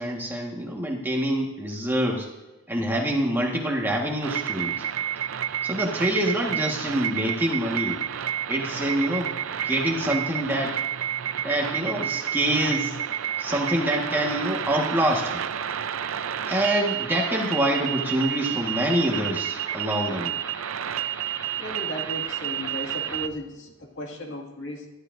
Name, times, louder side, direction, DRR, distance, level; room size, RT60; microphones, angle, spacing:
voice 1, 0.0-2.3 2.7-4.8 5.6-8.0 8.5-9.3 9.6-10.8 11.4-12.9 13.4-15.4 16.5-20.4, right 1 dB, 10° right, 0 dB, 1.5 m, -26 dB
sound 1, 4.2-23.3, right 10 dB, 70° right, 0.5 m, -30 dB
voice 2, 21.6-24.9, equal, 60° left, 1 dB, 2.1 m, -36 dB
23.0 x 11.5 x 2.6 m, 1.1 s
head